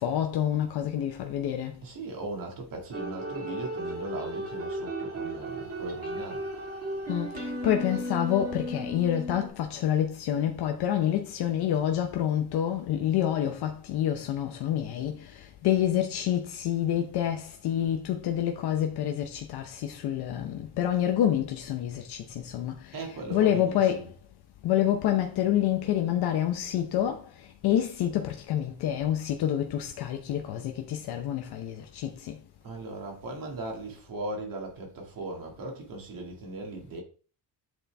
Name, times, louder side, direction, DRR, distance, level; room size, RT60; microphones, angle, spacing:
voice 1, 0.0-1.8 7.1-24.1 24.6-32.4, left 10 dB, 75° left, 0.8 m, -28 dB
voice 2, 1.8-6.5 22.9-24.1 32.6-37.0, right 2 dB, 60° right, 2.0 m, -38 dB
sound 1, 2.9-9.5, right 1 dB, 35° right, 1.8 m, -35 dB
8.1 x 4.1 x 3.3 m
cardioid pair, 155°, 39 cm